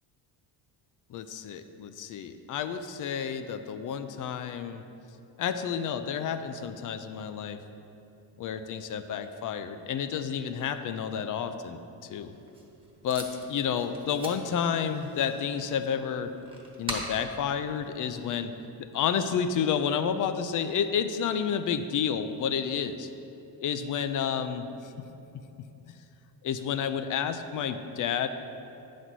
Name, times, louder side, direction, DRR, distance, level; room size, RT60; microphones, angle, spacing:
voice 1, 1.1-4.8 5.4-7.6 8.4-12.3 13.0-16.3 16.8-18.5 18.8-23.1 23.6-24.9 26.4-28.3, left 7 dB, 50° left, 10 dB, 0.5 m, -30 dB
Packing tape duct tape, 12.2-18.6, right 1 dB, 10° right, 1.1 m, -43 dB
9.1 x 4.2 x 6.1 m, 2.8 s
cardioid pair, 150°, 43 cm